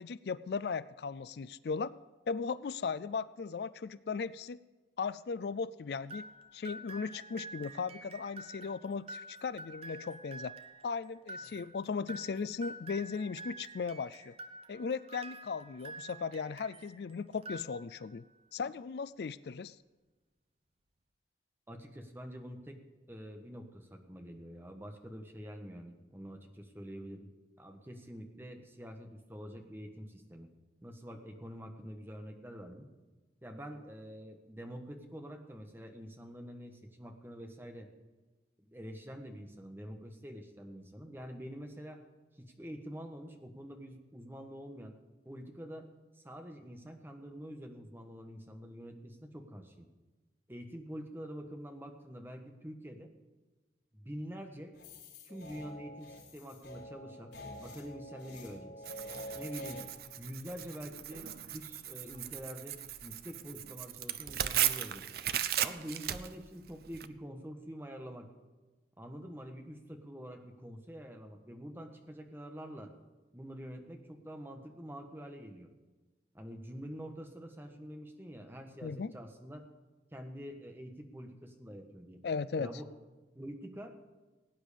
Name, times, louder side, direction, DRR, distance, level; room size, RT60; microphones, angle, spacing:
voice 1, 0.0-1.9 2.3-4.6 5.0-6.3 6.5-10.5 10.8-14.4 14.7-18.2 18.5-19.8 78.8-79.1 82.2-82.7, left 5 dB, 65° left, 17 dB, 0.4 m, -37 dB
sound 1, 6.1-17.0 17.3-18.2, right 1 dB, 35° right, 0.9 m, -48 dB
voice 2, 21.7-22.8 23.1-27.3 27.6-30.5 30.8-32.9 33.4-37.9 38.6-42.0 42.4-44.9 45.2-45.9 46.1-49.9 50.5-53.1 53.9-54.7 55.2-57.3 57.6-58.7 59.3-59.8 60.2-65.1 65.6-68.3 69.0-72.9 73.3-75.7 76.3-79.6 80.1-82.2 82.6-82.9 83.3-83.9, equal, 15° right, 4 dB, 1.4 m, -46 dB
sound 2, 54.7-59.8, equal, 80° left, 4.0 m, -47 dB
Tearing, 58.9-67.1, right 11 dB, 60° right, 0.6 m, -37 dB
17.5 x 9.3 x 5.1 m, 1.2 s
head